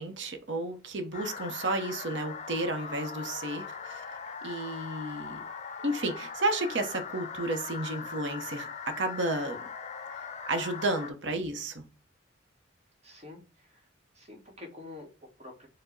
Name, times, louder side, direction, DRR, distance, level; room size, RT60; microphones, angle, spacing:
voice 1, 0.0-4.0 4.4-5.4 5.8-9.6 10.5-11.8, right 2 dB, 70° right, 0.8 m, -32 dB
sound 1, 1.1-11.1, left 6 dB, 35° left, 0.5 m, -40 dB
voice 2, 13.0-13.9 14.1-15.7, left 2 dB, 35° right, 1.1 m, -48 dB
4.4 x 2.1 x 4.3 m
head